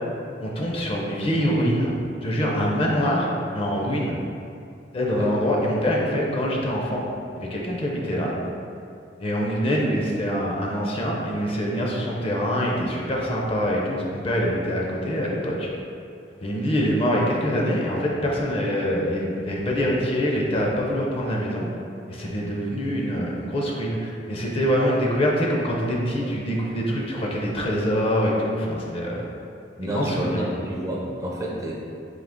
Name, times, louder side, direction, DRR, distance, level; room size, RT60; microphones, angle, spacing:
voice 1, 0.4-1.9 2.2-4.1 4.9-7.0 7.3-8.3 9.2-15.7 16.4-21.7 22.1-29.2 29.9-30.5, equal, 30° left, -2 dB, 0.5 m, -24 dB
voice 2, 29.8-31.7, right 1 dB, 20° right, -3 dB, 0.5 m, -29 dB
3.8 x 2.8 x 3.5 m, 2.6 s
head